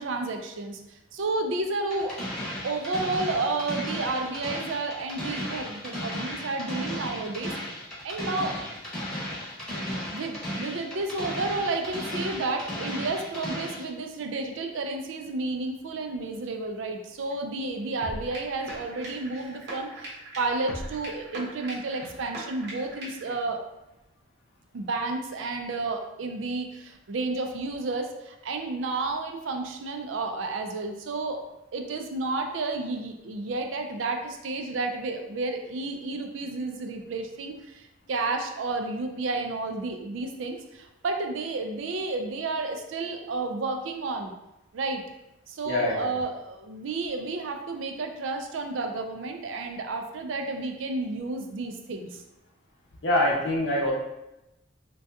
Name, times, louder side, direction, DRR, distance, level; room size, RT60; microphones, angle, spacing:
voice 1, 0.0-2.2 2.6-7.5 8.0-8.5 10.1-23.6 24.7-31.4 31.7-44.3 44.7-45.0 45.5-52.2, right 3 dB, 75° right, 4 dB, 0.4 m, -31 dB
sound 1, 1.9-13.9, equal, 5° left, 0.9 m, -35 dB
sound 2, 18.0-23.3, right 1 dB, 55° right, 0.8 m, -40 dB
voice 2, 45.6-46.1 53.0-53.9, left 1 dB, 60° left, -2 dB, 0.7 m, -24 dB
2.7 x 2.3 x 3.4 m, 0.94 s
head